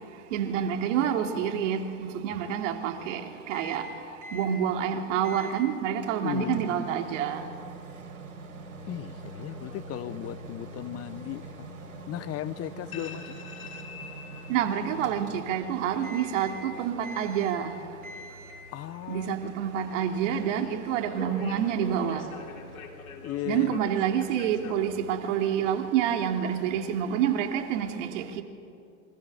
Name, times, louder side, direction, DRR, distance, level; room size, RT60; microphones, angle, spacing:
voice 1, 0.3-3.9 4.3-7.5 14.5-17.7 19.1-22.3 23.4-28.4, right 9 dB, 60° right, 3.1 m, -28 dB
Microwave oven, 3.5-3.9 4.2-4.5 5.2-5.6 6.0-15.7 16.0-16.7 17.0-17.7 18.0-18.7, right 2 dB, 90° right, 4.4 m, -44 dB
voice 2, 6.2-6.8 8.9-11.7 12.1-13.5 18.7-19.3 23.2-23.8, left 13 dB, 35° left, 1.0 m, -36 dB
sound 1, 8.8-25.0, left 5 dB, 85° left, 3.9 m, -47 dB
28.0 x 24.5 x 7.9 m
hypercardioid pair, 110°, 41 cm